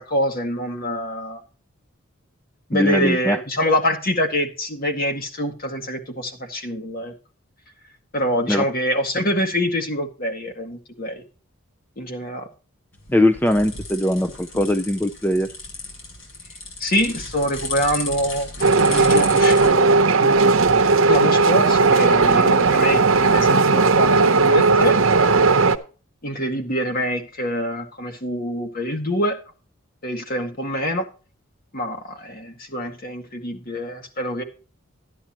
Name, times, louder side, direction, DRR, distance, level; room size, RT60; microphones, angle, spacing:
voice 1, 0.0-1.4 2.7-7.1 8.1-11.2 12.0-12.5 16.8-20.6 21.1-25.0 26.2-29.4 30.0-31.1 31.7-34.4, equal, 45° left, 4 dB, 2.0 m, -25 dB
voice 2, 2.7-3.4 8.5-8.7 13.1-15.5, left 1 dB, 10° left, 11 dB, 0.5 m, -20 dB
sound 1, 12.9-19.7, left 3 dB, 70° left, 5.6 m, -34 dB
sound 2, 18.6-25.8, right 3 dB, 75° right, 0.9 m, -16 dB
13.0 x 9.8 x 3.0 m, 0.36 s
head